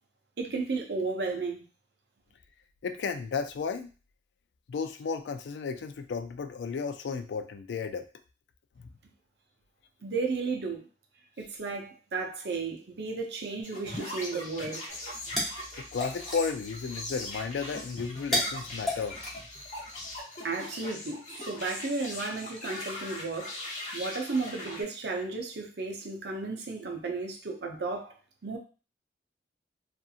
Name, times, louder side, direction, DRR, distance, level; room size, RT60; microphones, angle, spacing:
voice 1, 0.4-1.6 10.0-10.9 11.4-14.8 20.4-23.5 23.9-28.1 28.4-28.6, right 3 dB, 65° right, 2 dB, 0.6 m, -33 dB
voice 2, 2.8-3.9 4.7-8.0 8.8-8.9 15.8-19.2, left 5 dB, 70° left, 9 dB, 0.3 m, -33 dB
sound 1, 13.6-24.8, left 1 dB, 40° left, 0.8 m, -40 dB
sound 2, 14.9-20.2, left 1 dB, ahead, 0.7 m, -36 dB
2.7 x 2.5 x 2.4 m, 0.35 s
head